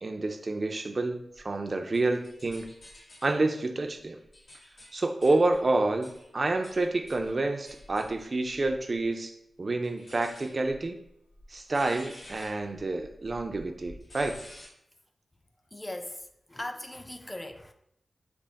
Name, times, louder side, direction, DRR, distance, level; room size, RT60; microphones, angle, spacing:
voice 1, 0.0-2.7 3.2-4.2 4.9-9.3 9.6-11.0 11.5-14.4, right 2 dB, 50° right, 0.4 m, -28 dB
sound 1, 1.3-3.4 4.0-9.1 9.8-14.7, left 1 dB, 80° left, 1.1 m, -51 dB
voice 2, 15.7-17.7, left 1 dB, 25° left, 0.4 m, -39 dB
3.4 x 2.0 x 3.9 m
cardioid pair, 45°, 0 cm